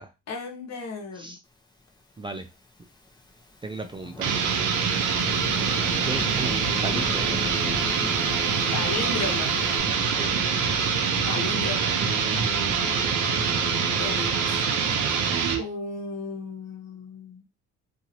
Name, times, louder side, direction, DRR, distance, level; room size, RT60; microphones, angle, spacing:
voice 1, 0.3-1.4 5.5-5.9 8.7-9.6 11.1-11.9 14.0-14.6 15.5-17.4, left 4 dB, 60° left, 2 dB, 1.2 m, -34 dB
Thunderstorm / Rain, 2.1-9.8, left 3 dB, 15° left, 0.7 m, -40 dB
voice 2, 2.2-2.5 3.6-4.3 6.0-7.4 10.1-10.3 13.0-13.2, right 3 dB, 15° right, 5 dB, 0.4 m, -36 dB
sound 1, 4.2-15.7, right 6 dB, 80° right, 0.7 m, -25 dB
sound 2, 5.1-14.3, left 7 dB, 85° left, 0.5 m, -40 dB
2.8 x 2.5 x 2.8 m, 0.25 s
cardioid pair, 90°, 30 cm